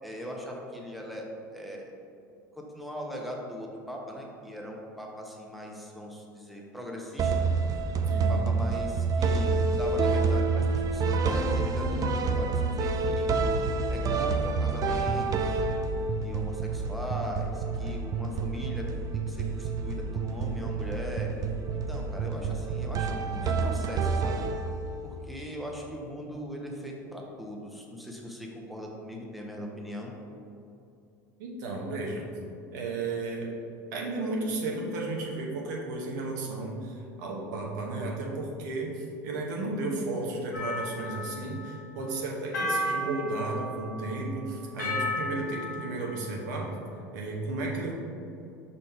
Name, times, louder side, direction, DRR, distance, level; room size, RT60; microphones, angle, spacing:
voice 1, 0.0-1.3 1.5-1.9 2.6-7.5 8.3-13.3 13.9-15.6 16.2-18.8 19.1-21.3 21.9-24.5 25.0-30.1, equal, ahead, -1 dB, 1.1 m, -39 dB
sound 1, 7.2-25.0, right 4 dB, 35° right, 0.5 m, -28 dB
voice 2, 8.1-8.4 31.4-32.2 32.7-33.5 33.9-46.7 47.1-47.9, right 2 dB, 75° right, -1 dB, 1.0 m, -33 dB
sound 2, 40.5-41.8 42.5-44.1 44.8-46.3, left 1 dB, 90° left, 1.4 m, -33 dB
5.2 x 4.2 x 4.3 m, 2.6 s
hypercardioid pair, 85°, 10 cm